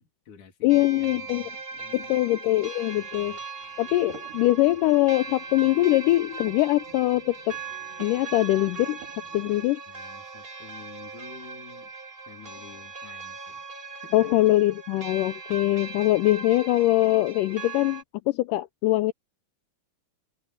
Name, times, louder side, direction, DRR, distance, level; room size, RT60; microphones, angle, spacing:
voice 1, 0.0-2.2 3.1-3.4 9.9-11.9 12.3-13.6 13.9-14.5, left 6 dB, 55° left, 4.3 m, -49 dB
voice 2, 0.6-1.4 1.9-3.4 3.8-7.6 8.0-9.0 9.3-9.8 14.1-19.1, left 17 dB, 80° left, 1.9 m, -23 dB
sound 1, 0.7-18.0, right 4 dB, 35° right, 0.9 m, -39 dB
sound 2, 3.5-10.2, right 5 dB, 65° right, 9.4 m, -62 dB
sound 3, 3.6-9.7, right 10 dB, 80° right, 4.0 m, -51 dB
omnidirectional pair, 4.2 m